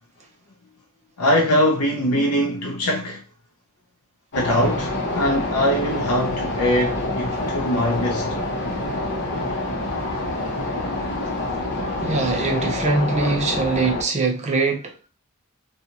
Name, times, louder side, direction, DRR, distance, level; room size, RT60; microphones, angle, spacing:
voice 1, 1.2-3.2 4.3-8.3, equal, 85° left, 0.5 m, -22 dB
sound 1, 4.3-14.0, left 2 dB, 55° left, 0.9 m, -26 dB
voice 2, 12.0-15.0, right 3 dB, 30° right, 0.6 m, -22 dB
2.6 x 2.3 x 2.8 m
head